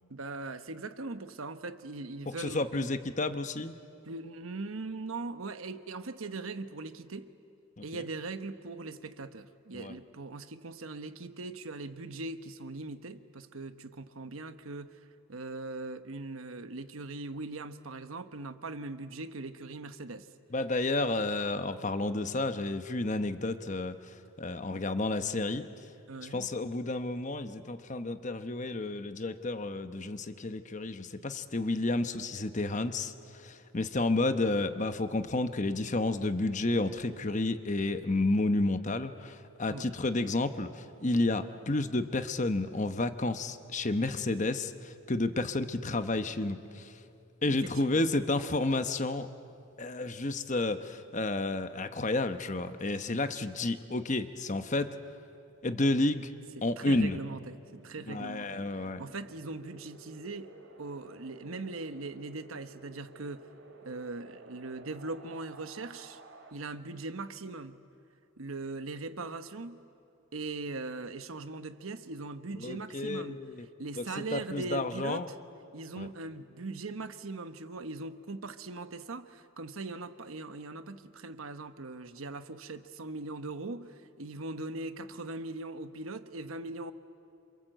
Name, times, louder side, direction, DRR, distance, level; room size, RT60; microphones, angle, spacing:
voice 1, 0.1-2.9 4.0-7.4 7.8-15.0 15.3-20.3 26.1-26.5 39.7-39.9 47.5-48.1 56.6-63.5 63.8-66.2 66.5-67.8 68.4-69.9 70.3-73.4 73.8-75.4 75.7-86.9, right 3 dB, 90° right, 1.1 m, -40 dB
voice 2, 2.4-3.7 7.8-8.0 9.7-9.9 20.5-25.6 26.3-46.9 47.4-49.3 49.8-55.0 55.6-56.3 56.6-57.2 58.1-59.0 72.6-73.6 74.0-74.1 74.3-75.3 76.0-76.1, left 2 dB, 35° left, 1.0 m, -31 dB
Wind, 56.5-66.5, right 2 dB, 70° right, 3.0 m, -54 dB
28.0 x 26.5 x 7.9 m
head